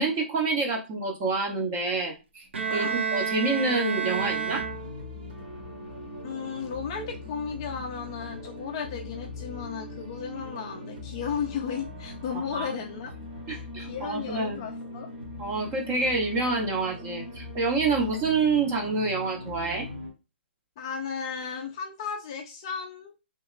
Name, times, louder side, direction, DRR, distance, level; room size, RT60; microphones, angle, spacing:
voice 1, 0.0-4.7 12.5-12.7 13.5-14.7 15.4-19.9, right 3 dB, 20° right, 1 dB, 0.6 m, -27 dB
Bowed string instrument, 2.5-5.3, right 6 dB, 75° right, 0.6 m, -30 dB
sound 1, 4.1-20.1, left 2 dB, 45° right, 1.1 m, -40 dB
voice 2, 6.2-13.1 13.5-15.1 20.8-23.1, left 7 dB, 25° left, 2 dB, 0.3 m, -35 dB
2.9 x 2.8 x 2.5 m, 0.27 s
hypercardioid pair, 170°, 6 cm